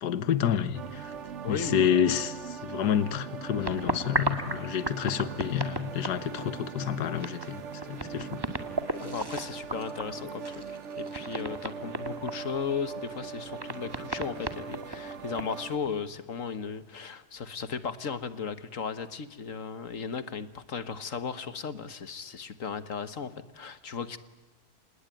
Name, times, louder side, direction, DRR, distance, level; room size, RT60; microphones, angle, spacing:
voice 1, 0.0-1.1 1.5-7.6 7.9-8.4, left 9 dB, 80° left, 16 dB, 1.7 m, -29 dB
sound 1, 0.7-15.8, right 6 dB, 50° right, 1.2 m, -41 dB
voice 2, 1.4-1.9 9.0-24.2, left 6 dB, 55° left, 14 dB, 1.6 m, -36 dB
sound 2, 3.6-6.6 6.9-7.0 7.2-12.3 12.9-13.0 13.5-15.9, right 1 dB, 15° right, 2.0 m, -34 dB
27.0 x 20.0 x 9.0 m, 1.1 s
omnidirectional pair, 1.7 m